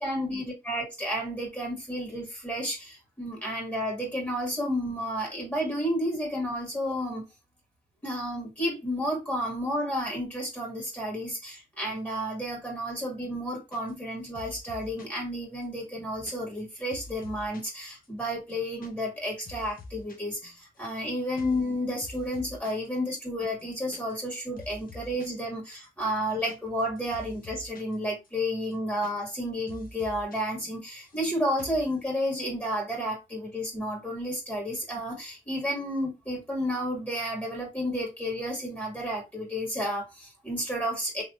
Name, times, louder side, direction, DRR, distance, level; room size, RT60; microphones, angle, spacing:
voice 1, 0.0-7.2 8.0-41.2, equal, 10° left, 1.9 m, -31 dB
sound 1, 13.7-14.1 14.3-15.2 15.6-17.7 18.0-18.1 18.4-18.9 19.1-20.2 20.4-21.0 21.4-21.7 22.0-22.9 23.1-23.2 23.5-24.3 24.6-25.4 25.8-28.0 28.2-28.3 28.6-29.4 29.7-30.4 30.6-31.3 31.6-31.9, left 2 dB, 65° left, 0.9 m, -47 dB
3.6 x 2.9 x 2.5 m
cardioid pair, 75°, 15 cm